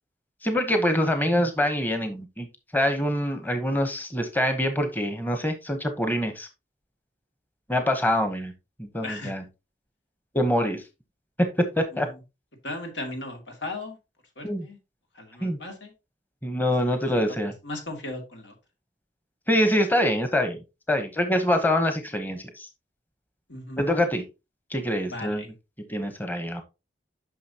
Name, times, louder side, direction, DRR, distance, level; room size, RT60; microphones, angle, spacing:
voice 1, 0.4-2.5 2.7-6.5 7.7-8.5 8.8-9.4 10.3-10.8 11.4-12.1 14.4-14.7 15.4-15.6 16.4-17.5 19.5-20.6 20.9-22.7 23.8-24.2 24.7-25.4 25.9-26.6, equal, 10° left, 7 dB, 1.0 m, -25 dB
voice 2, 9.0-9.3 11.9-12.1 12.6-14.0 14.4-14.8 15.1-15.9 16.7-16.8 17.6-18.5 23.5-23.9 25.0-25.5, left 2 dB, 85° left, 3 dB, 2.5 m, -36 dB
9.4 x 6.0 x 2.9 m, 0.26 s
head